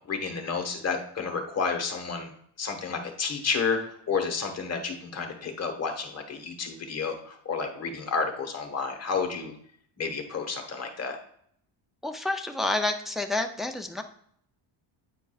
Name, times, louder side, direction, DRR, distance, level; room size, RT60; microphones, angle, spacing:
voice 1, 0.1-2.3 2.6-3.8 4.1-9.5 10.0-11.2, left 5 dB, 30° left, 4 dB, 1.2 m, -30 dB
voice 2, 12.0-14.0, left 2 dB, ahead, 4 dB, 0.3 m, -29 dB
9.2 x 4.6 x 2.3 m, 0.65 s
cardioid pair, 135°, 48 cm